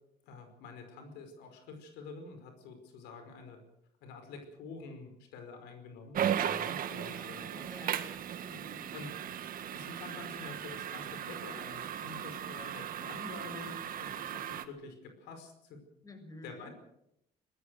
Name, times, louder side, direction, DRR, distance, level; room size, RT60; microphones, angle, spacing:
voice 1, 0.2-3.6 4.0-7.7 8.9-9.1 9.7-15.8 16.4-16.7, left 4 dB, 90° left, 6 dB, 5.2 m, -48 dB
sound 1, 6.1-14.7, right 9 dB, 55° right, 1.8 m, -37 dB
voice 2, 6.8-7.3 7.7-8.1 8.4-8.8 16.0-16.7, left 1 dB, 20° left, 6 dB, 6.4 m, -51 dB
22.5 x 19.5 x 6.5 m, 0.77 s
cardioid pair, 110°, 17 cm